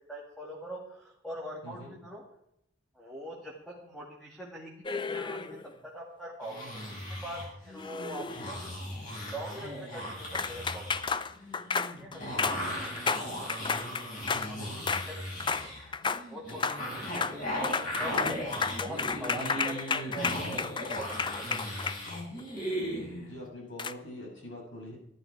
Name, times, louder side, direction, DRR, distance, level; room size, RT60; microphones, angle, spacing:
voice 1, 0.1-2.2 2.9-5.6 5.8-7.4 7.6-8.8 9.2-11.2 11.8-12.3 12.6-12.7 12.9-13.8 14.5-15.7 16.3-17.4 18.0-18.3 18.8-21.7, right 1 dB, ahead, -3 dB, 2.3 m, -43 dB
sound 1, 4.8-5.7 7.7-8.7 10.3-14.5 14.9-15.1 15.4-15.7 15.9-16.2 16.5-16.8 17.1-17.4 17.6-22.4 23.8-23.9, left 5 dB, 25° left, 0.5 m, -32 dB
sound 2, 6.4-23.4, equal, 45° left, 6.5 m, -37 dB
voice 2, 14.5-14.9 23.2-25.0, left 1 dB, 75° left, -2 dB, 7.5 m, -44 dB
14.5 x 12.0 x 4.8 m, 0.76 s
head